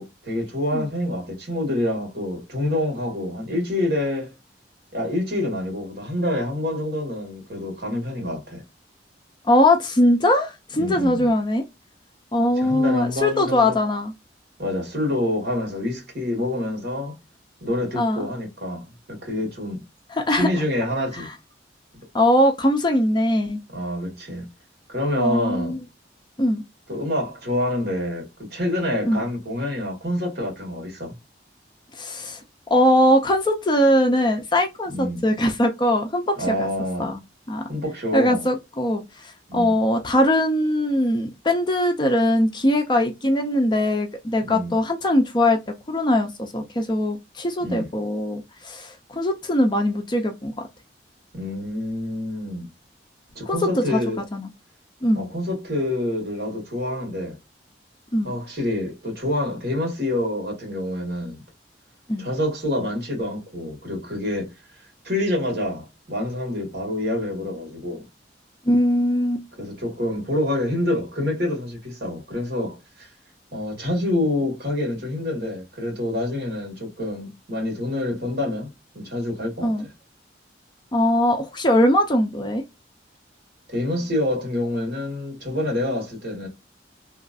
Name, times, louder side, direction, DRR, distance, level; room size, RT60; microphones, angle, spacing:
voice 1, 0.0-4.3 4.9-8.6 10.7-11.3 12.6-13.8 14.6-17.2 17.6-19.8 20.3-21.3 23.7-24.5 24.9-25.8 26.9-31.1 34.9-35.2 36.4-37.1 37.7-38.5 39.5-39.7 44.4-44.8 47.6-47.9 51.3-52.7 53.3-54.2 55.1-57.4 58.2-61.4 62.2-64.5 65.0-68.1 69.6-73.1 73.5-78.7 78.9-79.7 83.7-86.5, left 1 dB, 55° right, 1.6 m, -27 dB
voice 2, 9.4-11.6 12.3-14.1 17.9-18.2 20.1-20.5 21.1-21.2 22.1-23.6 25.2-25.8 26.4-26.6 29.0-29.2 31.9-32.4 32.7-36.7 37.0-37.2 37.5-37.6 38.1-45.6 45.9-50.5 53.5-53.6 53.9-54.0 54.3-54.5 55.0-55.3 58.1-58.3 62.1-62.3 68.6-69.4 79.6-79.8 80.9-82.6, left 1 dB, 25° left, 0.5 m, -21 dB
3.0 x 2.5 x 2.4 m
head